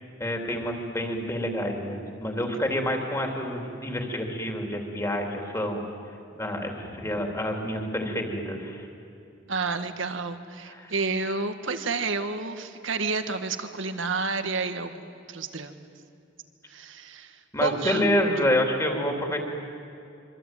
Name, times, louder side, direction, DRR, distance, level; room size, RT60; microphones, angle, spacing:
voice 1, 0.2-5.8 6.4-8.9 10.6-10.9 17.5-19.4, equal, 15° left, 2 dB, 3.2 m, -28 dB
voice 2, 9.5-15.7 16.7-18.0, right 4 dB, 70° right, 8 dB, 1.7 m, -30 dB
26.0 x 25.0 x 9.2 m, 2.6 s
head